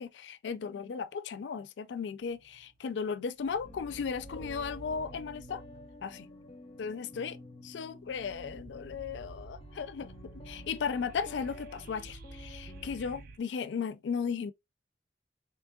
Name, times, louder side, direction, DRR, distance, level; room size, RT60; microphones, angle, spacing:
voice 1, 0.0-5.6 6.0-6.3 6.8-7.4 7.6-14.5, left 6 dB, 85° left, 0.4 m, -36 dB
sound 1, 2.2-3.0 3.4-13.4, right 3 dB, 55° right, 0.4 m, -50 dB
sound 2, 3.6-13.1, left 2 dB, 30° left, 0.5 m, -52 dB
3.6 x 2.9 x 2.3 m
head